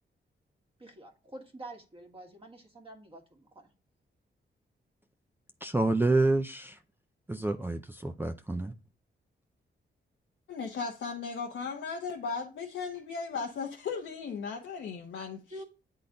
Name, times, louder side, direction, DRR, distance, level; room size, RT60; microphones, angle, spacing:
voice 1, 0.8-3.7 15.5-15.6, right 1 dB, 30° right, 1.7 m, -47 dB
voice 2, 5.6-6.8 7.3-8.7, right 2 dB, 10° right, 0.5 m, -28 dB
voice 3, 10.5-15.4, left 5 dB, 85° left, 1.0 m, -36 dB
8.4 x 3.9 x 3.8 m
wide cardioid pair, 115°, 20 cm